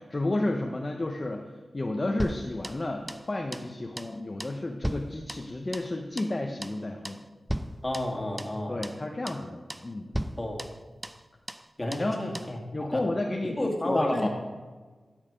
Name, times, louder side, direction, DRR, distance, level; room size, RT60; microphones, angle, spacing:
voice 1, 0.0-1.5 1.7-7.2 8.7-10.1 12.0-12.2 12.7-14.3, left 2 dB, 35° left, 2 dB, 0.9 m, -31 dB
sound 1, 2.2-3.3 3.5-3.7 4.0-4.1 4.4-5.9 6.2-6.4 6.6-6.8 7.0-7.2 7.5-8.6 8.8-9.0 9.3-9.4 9.7-9.9 10.1-11.2 11.5-11.6 11.9-12.1 12.3-12.5, equal, 10° right, 0.5 m, -36 dB
voice 2, 7.8-8.8 10.4-10.7 11.8-13.0 13.4-14.3, left 1 dB, 20° left, 1 dB, 2.3 m, -31 dB
12.0 x 6.6 x 5.1 m, 1.3 s
cardioid pair, 55°, 0 cm